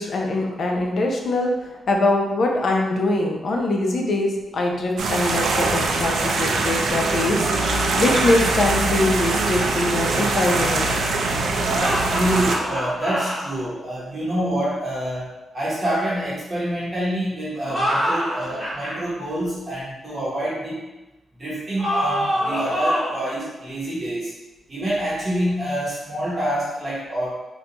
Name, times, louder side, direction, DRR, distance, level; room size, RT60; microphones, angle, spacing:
voice 1, 0.0-10.9, left 2 dB, 50° left, 1 dB, 0.5 m, -23 dB
sound 1, 5.0-12.6, right 3 dB, 75° right, 0.4 m, -22 dB
voice 2, 11.5-20.8 21.4-24.3 24.7-27.3, right 1 dB, 30° right, -7 dB, 0.9 m, -27 dB
sound 2, 11.7-13.4 17.6-19.0 21.8-23.3, equal, 5° left, 1.2 m, -25 dB
3.8 x 2.2 x 2.8 m, 1.1 s
wide cardioid pair, 150°, 0 cm